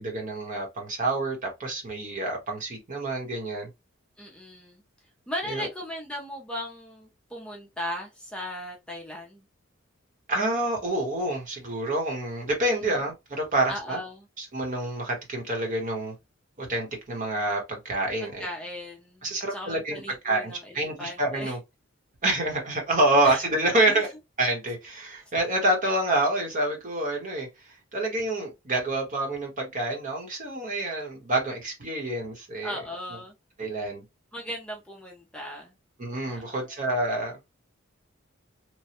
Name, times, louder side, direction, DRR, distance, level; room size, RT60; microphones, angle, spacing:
voice 1, 0.0-3.7 5.5-5.7 10.3-14.0 14.4-16.1 16.6-18.5 19.2-21.6 22.2-24.1 24.4-32.8 33.6-34.0 36.0-37.5, right 2 dB, 40° right, 1.1 m, -27 dB
voice 2, 4.2-4.8 5.3-9.4 12.9-13.0 13.7-14.3 18.4-21.6 23.2-23.4 23.9-24.0 32.6-33.3 34.3-35.7 36.3-36.7, equal, 5° left, 0.6 m, -37 dB
3.1 x 2.2 x 2.9 m
head